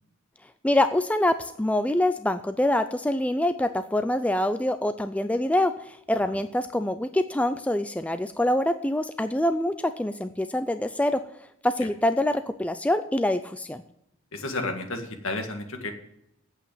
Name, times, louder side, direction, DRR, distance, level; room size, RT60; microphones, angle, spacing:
voice 1, 0.6-11.2 11.6-13.8, left 1 dB, 5° left, 10 dB, 0.4 m, -25 dB
voice 2, 14.3-15.9, left 2 dB, 70° left, 4 dB, 2.0 m, -31 dB
8.5 x 8.2 x 8.7 m, 0.78 s
head